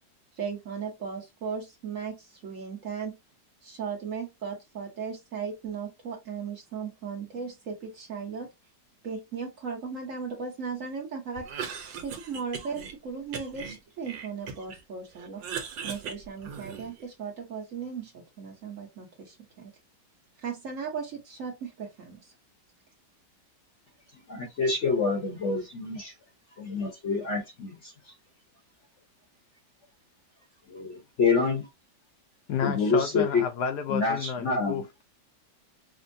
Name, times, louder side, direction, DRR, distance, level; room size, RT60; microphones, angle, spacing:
voice 1, 0.4-3.2 3.6-8.5 9.0-11.5 12.0-15.4 15.8-19.7 20.4-22.3, right 6 dB, 50° right, 1.2 m, -37 dB
Cough, 11.4-12.9 13.3-14.8 15.1-17.0, right 6 dB, 85° right, 1.5 m, -39 dB
voice 2, 24.3-26.1 26.6-27.9 30.7-31.6 32.6-33.4 33.9-34.8, left 4 dB, 50° left, 0.9 m, -27 dB
voice 3, 32.5-35.0, left 7 dB, 70° left, 1.1 m, -31 dB
5.2 x 2.1 x 2.6 m
omnidirectional pair, 1.9 m